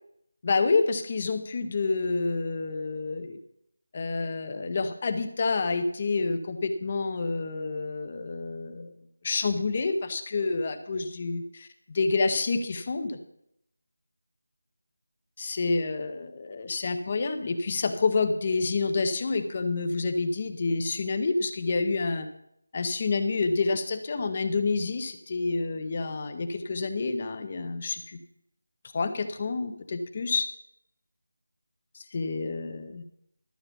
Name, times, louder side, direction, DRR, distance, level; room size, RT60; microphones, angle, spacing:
voice 1, 0.4-3.4 3.9-8.9 9.2-13.2 15.4-22.3 22.7-28.2 28.9-30.5 31.9-33.0, left 3 dB, 20° left, 9 dB, 0.7 m, -28 dB
12.5 x 7.4 x 6.9 m, 0.77 s
figure-of-eight pair, 180°, 0 cm